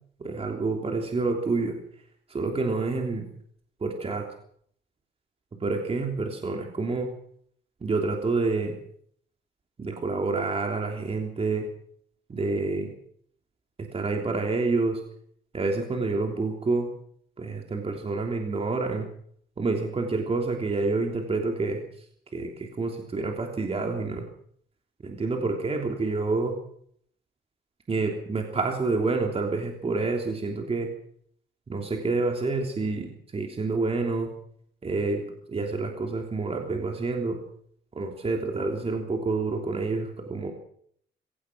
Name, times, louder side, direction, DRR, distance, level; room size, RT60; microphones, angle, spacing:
voice 1, 0.2-1.8 2.3-3.3 3.8-4.2 5.6-7.1 7.8-8.7 9.8-11.7 12.3-12.9 13.9-15.0 15.5-16.9 17.4-19.1 19.6-22.0 22.3-24.3 25.0-26.6 27.9-30.9 31.7-34.3 34.8-35.2 35.5-37.4 37.9-40.5, right 3 dB, 30° right, 2 dB, 3.2 m, -28 dB
24.5 x 17.0 x 6.2 m, 0.64 s
cardioid pair, 135°, 18 cm